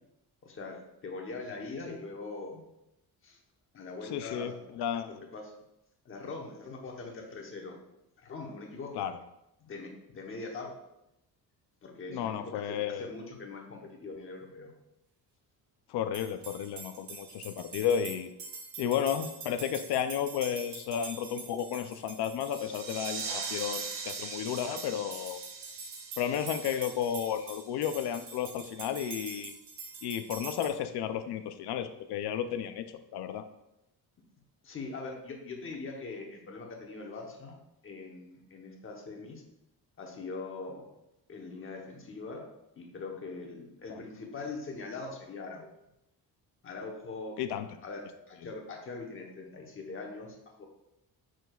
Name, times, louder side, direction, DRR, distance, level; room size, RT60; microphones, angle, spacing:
voice 1, 0.4-2.7 3.2-3.4 3.7-4.6 5.0-5.5 6.0-7.8 8.2-9.0 9.6-10.7 11.8-14.7 34.6-37.6 37.8-39.4 40.0-40.9 41.3-42.5 42.8-45.7 46.6-47.4 47.8-50.6, left 3 dB, 30° left, 1 dB, 1.0 m, -42 dB
voice 2, 4.1-5.2 8.9-9.1 12.1-13.1 15.9-18.3 18.8-25.4 26.2-29.5 30.0-32.8 33.1-33.4 43.9-44.0 47.4-47.7, left 9 dB, 75° left, 9 dB, 0.5 m, -33 dB
sound 1, 16.1-30.7, right 4 dB, 85° right, 1.8 m, -45 dB
sound 2, 22.5-27.8, right 5 dB, 55° right, 0.8 m, -41 dB
6.8 x 6.1 x 2.3 m, 0.86 s
cardioid pair, 175°, 41 cm